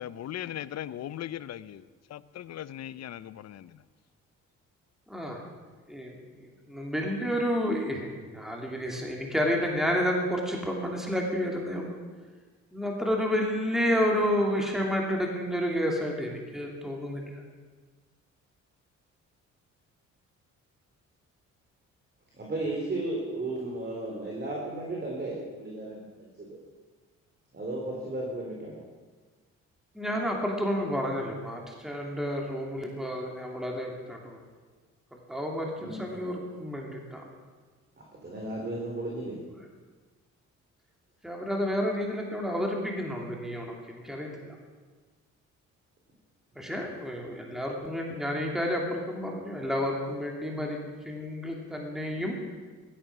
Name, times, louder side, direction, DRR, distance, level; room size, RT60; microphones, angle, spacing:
voice 1, 0.0-1.8 2.1-3.8, left 11 dB, 60° left, 16 dB, 0.7 m, -38 dB
voice 2, 5.1-5.4 5.9-6.1 6.7-12.0 12.7-17.2 29.9-34.4 35.3-37.2 41.2-44.5 46.6-50.8 51.0-52.4, equal, ahead, 0 dB, 2.9 m, -30 dB
voice 3, 22.4-26.6 27.5-28.8 35.8-36.0 38.0-39.4 46.5-46.8, right 2 dB, 35° right, -2 dB, 3.9 m, -35 dB
16.0 x 13.5 x 6.1 m, 1.4 s
cardioid pair, 90°, 30 cm